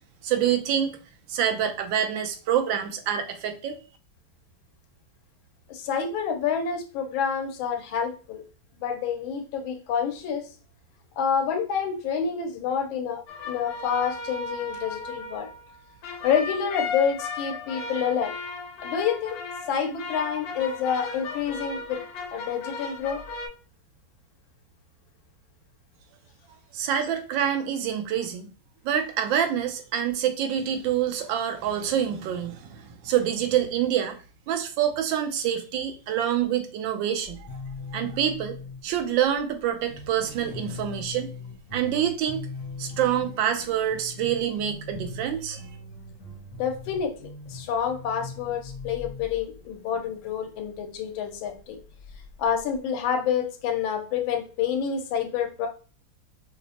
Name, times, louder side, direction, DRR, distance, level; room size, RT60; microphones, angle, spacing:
voice 1, 0.2-0.9 1.3-3.8 26.7-28.5 28.8-34.2 34.5-37.5 37.9-38.6 38.8-41.3 41.7-42.4 42.8-45.6, right 9 dB, 75° right, 7 dB, 1.2 m, -26 dB
voice 2, 5.7-8.4 8.8-10.5 11.2-15.5 16.2-18.3 18.8-19.4 19.7-22.0 22.3-23.2 46.6-51.8 52.4-55.7, left 7 dB, 90° left, 4 dB, 1.4 m, -28 dB
sound 1, 13.3-23.5, left 4 dB, 70° left, 1.4 m, -36 dB
sound 2, 37.2-50.8 51.3-52.8, left 3 dB, 55° left, 1.5 m, -41 dB
5.0 x 2.0 x 2.7 m, 0.38 s
omnidirectional pair, 2.2 m